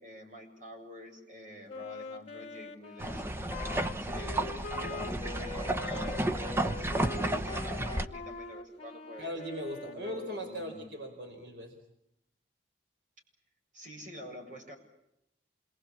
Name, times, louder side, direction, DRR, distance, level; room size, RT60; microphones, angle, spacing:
voice 1, 0.0-9.3 9.8-10.9 13.7-14.8, left 1 dB, 45° right, 2 dB, 7.2 m, -48 dB
Wind instrument woodwind instrument, 1.7-10.7, left 3 dB, 35° left, 2.9 m, -43 dB
sound 1, 3.0-8.1, right 1 dB, 15° right, 1.0 m, -32 dB
voice 2, 9.2-11.7, equal, 75° right, 4 dB, 4.6 m, -39 dB
27.5 x 22.5 x 8.7 m, 0.84 s
head